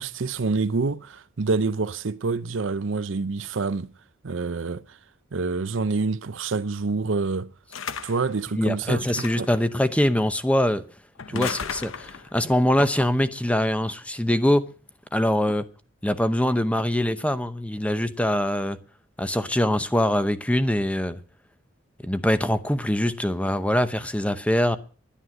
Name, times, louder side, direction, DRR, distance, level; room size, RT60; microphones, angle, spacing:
voice 1, 0.0-3.9 4.2-5.0 5.3-7.5 8.0-9.1 9.4-9.5 11.3-11.5, right 4 dB, 70° right, 0.6 m, -27 dB
sound 1, 7.7-8.3 9.1-9.6 11.2-12.3, left 7 dB, 90° left, 0.8 m, -34 dB
voice 2, 8.6-10.8 11.3-14.7 15.1-15.7 16.0-18.8 19.2-21.2 22.0-24.8, left 1 dB, 5° left, 0.8 m, -23 dB
11.0 x 10.0 x 7.7 m
head